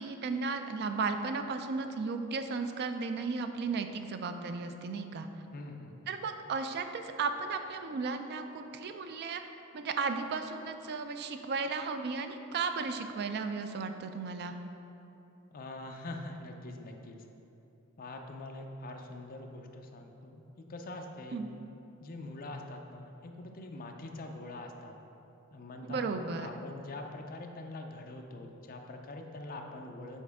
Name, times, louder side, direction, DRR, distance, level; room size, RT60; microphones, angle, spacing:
voice 1, 0.0-5.3 6.1-9.4 9.7-14.6 21.3-21.5 25.8-26.5, right 4 dB, 50° right, 8 dB, 0.4 m, -35 dB
voice 2, 5.5-6.1 15.5-17.2 18.0-21.4 22.0-24.9 25.5-30.2, left 2 dB, 45° left, 3 dB, 0.5 m, -44 dB
7.1 x 4.5 x 3.5 m, 3.0 s
head